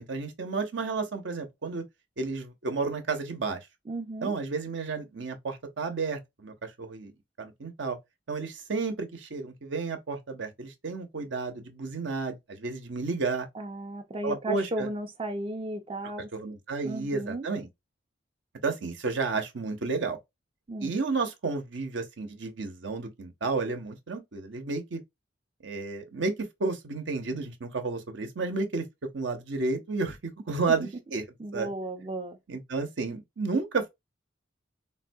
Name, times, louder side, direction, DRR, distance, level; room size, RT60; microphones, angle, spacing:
voice 1, 0.0-1.8 2.2-3.6 4.2-7.1 7.4-8.0 8.3-13.5 14.2-14.9 16.3-17.7 18.6-20.2 20.8-25.0 25.6-28.8 29.1-31.2 31.5-31.7 32.5-33.9, right 4 dB, 70° right, 0.8 m, -32 dB
voice 2, 3.9-4.3 13.5-16.3 16.8-17.5 20.7-20.9 31.4-32.4, right 1 dB, 30° right, 0.5 m, -35 dB
3.7 x 2.2 x 2.6 m
head